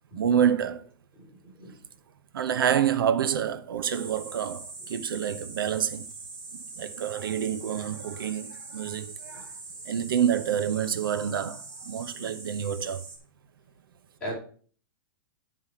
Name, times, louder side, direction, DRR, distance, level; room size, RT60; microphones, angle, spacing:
voice 1, 0.1-0.8 2.3-6.1 6.8-9.5 9.9-13.0, right 9 dB, 75° right, 0.8 m, -27 dB
voice 2, 1.1-1.7 9.3-9.5 12.1-12.3 14.2-14.4, right 1 dB, 5° left, 5.0 m, -39 dB
sound 1, 3.9-13.2, right 3 dB, 40° right, 3.7 m, -43 dB
9.9 x 5.5 x 5.6 m
supercardioid pair, 180°, 12 cm